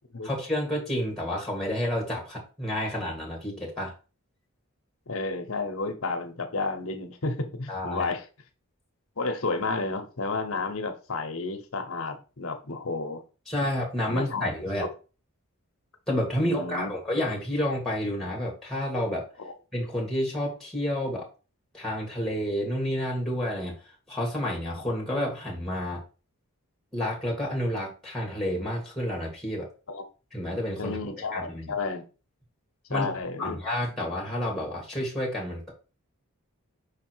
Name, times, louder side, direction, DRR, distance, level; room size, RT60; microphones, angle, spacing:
voice 1, 0.2-3.9 7.7-8.1 13.5-14.9 16.1-19.3 19.7-21.3 21.7-23.7 24.1-26.0 26.9-29.7 30.3-31.0 31.3-31.7 32.9-33.1 33.4-35.7, left 1 dB, ahead, 2.0 m, -30 dB
voice 2, 5.1-8.2 9.2-13.2 14.0-14.5 14.8-14.9 16.4-16.9 29.9-30.0 30.8-32.1 32.9-33.6, left 3 dB, 65° left, 1.0 m, -31 dB
5.6 x 4.1 x 4.6 m
head